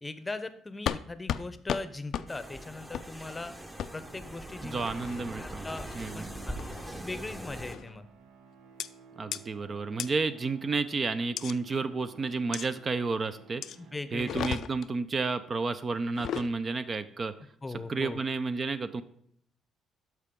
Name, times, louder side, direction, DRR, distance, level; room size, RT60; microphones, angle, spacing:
voice 1, 0.0-3.5 3.9-4.8 5.4-6.6 7.0-8.1 13.8-14.3 17.6-18.2, left 3 dB, 20° left, 12 dB, 0.7 m, -39 dB
sound 1, 0.9-1.0 1.3-1.4 1.7-1.8 2.1-2.3 2.9-3.1 3.8-3.9 4.9-5.2 5.8-6.1 6.6-6.9 7.7-8.0 8.8-8.9 9.3-9.4 10.0-10.1 11.4-11.5 12.5-12.7 13.6-13.8 14.2-14.9 16.1-16.5, left 9 dB, 65° left, 0.3 m, -34 dB
sound 2, 2.3-7.8, right 1 dB, 15° right, 1.0 m, -41 dB
sound 3, 3.8-14.6, right 5 dB, 85° right, 0.8 m, -55 dB
voice 2, 4.6-5.7 5.9-6.3 9.2-13.6 14.1-17.3 17.9-19.0, right 4 dB, 40° right, 12 dB, 0.5 m, -31 dB
12.5 x 4.6 x 3.7 m, 0.68 s
supercardioid pair, 65°, 0 cm